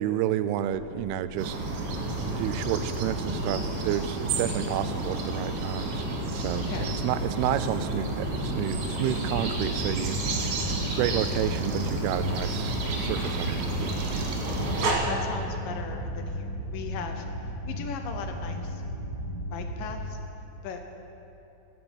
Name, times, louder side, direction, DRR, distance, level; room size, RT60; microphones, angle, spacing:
voice 1, 0.0-1.6 2.4-6.1 6.3-10.6 10.9-14.0, right 11 dB, 90° right, 13 dB, 2.5 m, -30 dB
sound 1, 0.6-9.8, left 1 dB, 20° left, 3.7 m, -44 dB
sound 2, 1.4-14.9, right 2 dB, 55° right, 3.2 m, -31 dB
sound 3, 9.2-20.0, equal, 50° left, 3.8 m, -35 dB
voice 2, 14.8-17.2 17.7-18.8 19.5-20.0 20.6-20.8, left 6 dB, 75° left, 5 dB, 2.2 m, -38 dB
14.5 x 9.3 x 8.0 m, 2.9 s
omnidirectional pair, 4.4 m